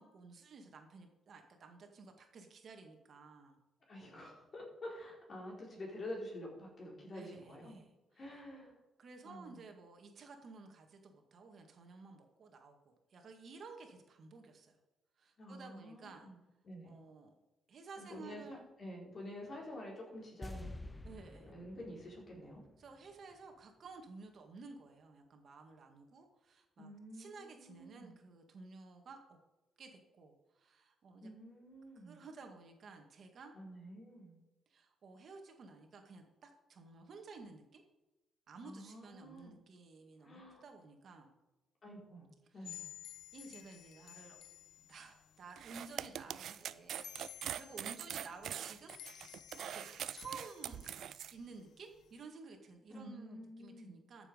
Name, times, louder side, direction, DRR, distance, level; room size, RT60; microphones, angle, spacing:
voice 1, 0.0-3.6 7.1-7.9 8.3-8.4 9.0-14.8 15.2-16.3 16.8-17.3 17.7-18.6 21.0-21.5 22.8-29.4 29.8-31.3 32.0-33.5 34.7-37.8 38.5-41.4 42.5-42.8 43.3-44.4 44.8-49.3 49.6-50.9 51.3-54.3, right 4 dB, 50° right, 3 dB, 2.0 m, -54 dB
voice 2, 3.9-7.8 8.1-8.8 9.2-9.6 15.4-16.4 16.6-16.9 18.0-20.7 21.4-22.6 26.8-28.1 31.2-32.2 33.5-34.4 38.6-39.5 40.2-40.6 41.8-42.3 42.5-42.9 52.9-54.0, left 1 dB, 35° left, -2 dB, 4.3 m, -49 dB
sound 1, 20.4-23.6 23.9-24.0, left 2 dB, 10° left, 0.5 m, -50 dB
sound 2, 42.6-52.2, left 11 dB, 75° left, 0.8 m, -55 dB
sound 3, 45.6-51.3, right 10 dB, 65° right, 0.4 m, -43 dB
14.0 x 7.3 x 5.3 m, 1.0 s
cardioid pair, 125°, 0 cm